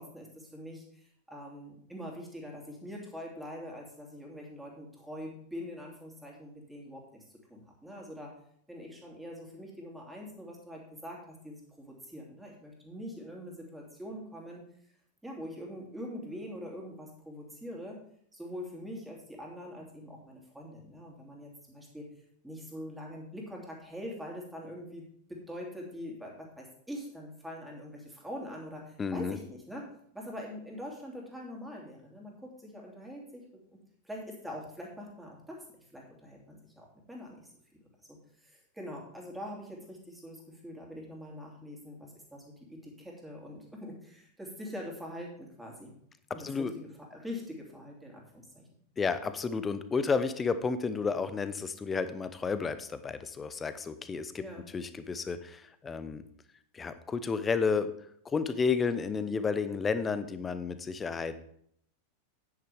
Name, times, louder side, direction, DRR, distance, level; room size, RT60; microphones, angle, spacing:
voice 1, 0.0-7.0 7.5-8.3 8.7-14.6 15.2-18.0 18.3-22.1 22.4-29.9 30.1-33.4 33.7-33.8 34.0-37.5 38.1-45.9 46.3-48.6 54.4-54.7, equal, 5° right, -1 dB, 2.9 m, -44 dB
voice 2, 29.0-29.4 46.4-46.7 49.0-54.4 54.7-56.2 56.7-57.9 58.2-61.4, left 5 dB, 15° left, 12 dB, 0.8 m, -31 dB
9.6 x 9.5 x 3.5 m, 0.66 s
figure-of-eight pair, 90°, 0 cm